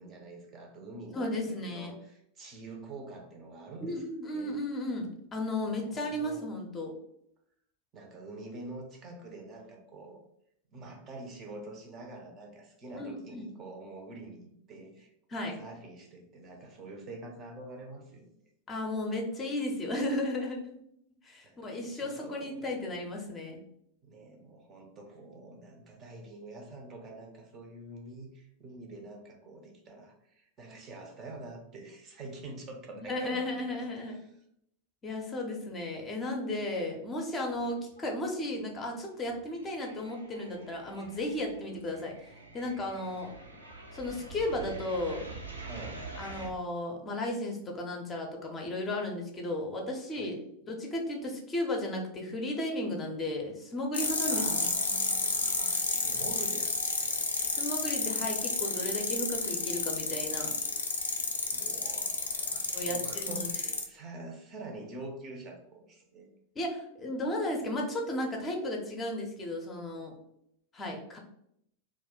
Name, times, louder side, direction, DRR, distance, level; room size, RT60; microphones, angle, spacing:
voice 1, 0.0-4.5 5.7-6.5 7.9-10.2 10.7-15.1 15.4-18.3 21.4-22.9 24.0-33.8 34.0-34.3 45.6-46.0 50.2-50.4 54.3-57.5 61.5-66.3, right 2 dB, 30° right, 2 dB, 0.5 m, -46 dB
voice 2, 1.1-1.9 3.8-6.9 12.9-13.5 15.3-15.5 18.7-20.7 21.2-23.6 33.1-34.2 35.0-43.3 43.9-45.2 46.2-50.4 50.7-54.4 57.6-60.5 62.7-63.4 66.6-70.1 70.7-71.2, left 1 dB, 20° left, 1 dB, 0.6 m, -34 dB
sound 1, 37.5-38.2 38.4-46.5, right 3 dB, 80° right, 0.5 m, -46 dB
sound 2, 53.9-63.8, left 3 dB, 70° left, 0.4 m, -31 dB
2.3 x 2.1 x 3.5 m, 0.74 s
figure-of-eight pair, 90°, 0 cm